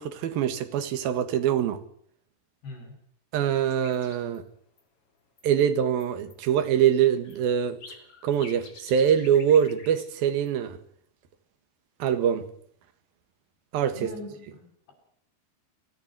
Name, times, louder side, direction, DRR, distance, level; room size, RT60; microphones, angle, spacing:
voice 1, 0.0-1.8 3.3-4.4 5.4-7.8 8.2-10.8 12.0-12.5 13.7-14.1, right 9 dB, 70° right, 3.3 m, -24 dB
voice 2, 2.6-2.9 13.9-14.9, left 1 dB, 90° left, 10.5 m, -41 dB
sound 1, 3.7-4.4 4.8-4.9 5.4-5.6 6.0-10.5, left 4 dB, 35° left, 3.5 m, -49 dB
30.0 x 10.5 x 9.4 m
omnidirectional pair, 4.7 m